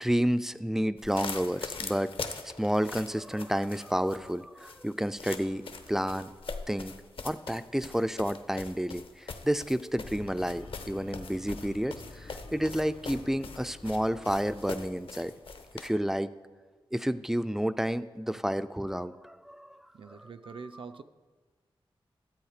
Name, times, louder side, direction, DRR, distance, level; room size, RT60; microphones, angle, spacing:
voice 1, 0.0-2.1 2.4-5.6 5.9-6.3 6.7-6.9 7.2-15.3 15.7-16.3 16.9-20.3, equal, 5° right, 13 dB, 0.3 m, -30 dB
sound 1, 1.0-15.9, left 4 dB, 70° left, 0.8 m, -42 dB
sound 2, 10.0-16.2, left 3 dB, 85° left, 1.2 m, -50 dB
voice 2, 19.9-21.0, right 5 dB, 65° right, 10 dB, 0.5 m, -44 dB
12.0 x 8.1 x 4.9 m, 1.4 s
wide cardioid pair, 140°, 10 cm